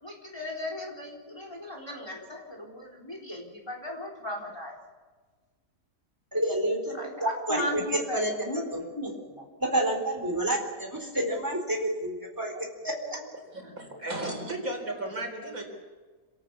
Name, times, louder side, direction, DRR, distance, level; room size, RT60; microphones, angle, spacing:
voice 1, 0.0-4.7 6.9-9.4 12.4-12.6 13.1-13.3, left 1 dB, 15° left, 0 dB, 4.1 m, -37 dB
voice 2, 6.3-8.3 9.6-12.5 12.8-12.9, right 1 dB, 15° right, 1 dB, 4.0 m, -29 dB
voice 3, 13.5-15.6, right 1 dB, 65° right, 3 dB, 4.8 m, -34 dB
27.5 x 17.5 x 7.2 m, 1.4 s
omnidirectional pair, 1.6 m